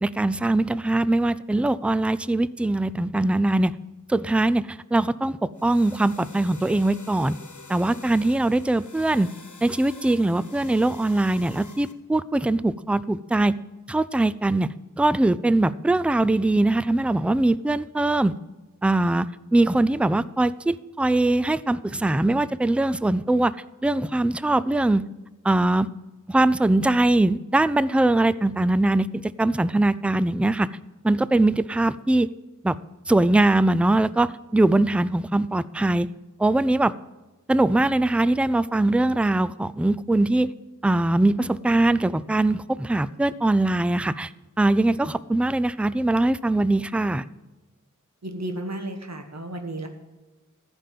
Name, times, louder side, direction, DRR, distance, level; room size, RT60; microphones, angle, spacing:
voice 1, 0.0-3.8 4.1-7.3 7.7-9.3 9.6-13.6 13.9-18.4 18.8-23.6 23.8-25.0 25.4-25.9 26.3-30.7 31.0-32.3 32.6-32.8 33.1-36.1 36.4-36.9 37.5-40.5 40.8-44.3 44.6-47.2, right 2 dB, 5° right, 17 dB, 0.3 m, -22 dB
sound 1, 5.5-11.9, left 3 dB, 70° left, 1.3 m, -46 dB
voice 2, 48.2-49.9, right 1 dB, 55° right, 5 dB, 1.4 m, -33 dB
14.5 x 5.3 x 7.6 m, 1.1 s
wide cardioid pair, 50°, 31 cm